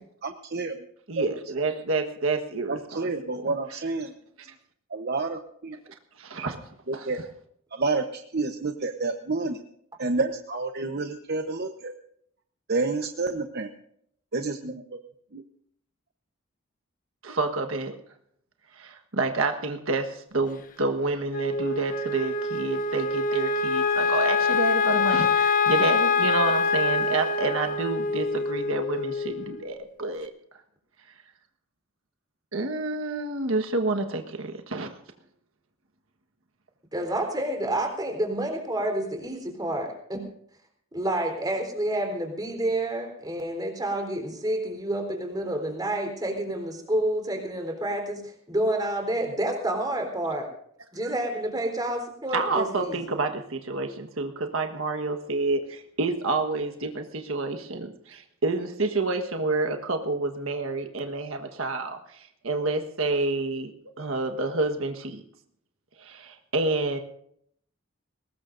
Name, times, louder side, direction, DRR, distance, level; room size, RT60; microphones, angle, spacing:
voice 1, 0.2-0.8 1.1-1.2 2.7-4.1 4.9-5.8 6.9-7.3 7.7-9.6 10.0-11.9 12.7-13.7 14.3-15.0 15.3-15.4, right 3 dB, 50° right, 6 dB, 1.0 m, -29 dB
voice 2, 1.1-2.8 6.2-6.6 17.2-18.0 18.7-30.3 32.5-34.9 52.3-63.7 64.0-65.2 66.0-67.0, right 3 dB, 75° right, 5 dB, 1.4 m, -28 dB
Wind instrument woodwind instrument, 21.3-29.8, left 4 dB, 40° left, 1.2 m, -25 dB
voice 3, 36.9-40.2 40.9-50.5 50.9-53.0, right 1 dB, 20° right, 2 dB, 3.8 m, -29 dB
22.5 x 19.5 x 2.6 m, 0.68 s
head